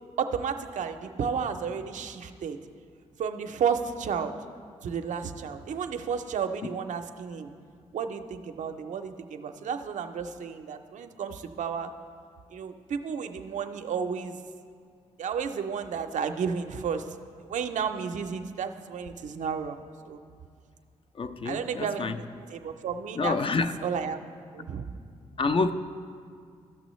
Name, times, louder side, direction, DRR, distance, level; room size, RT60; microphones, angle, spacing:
voice 1, 0.2-2.6 3.2-4.4 4.8-7.5 7.9-11.9 12.5-14.4 15.2-17.1 17.4-20.2 21.4-22.1 22.5-24.2 24.5-24.9, right 6 dB, 70° right, 0.5 m, -32 dB
voice 2, 21.1-22.2 23.1-23.8 25.4-25.7, left 4 dB, 45° left, 0.5 m, -27 dB
14.0 x 6.1 x 3.1 m
supercardioid pair, 55°, 13 cm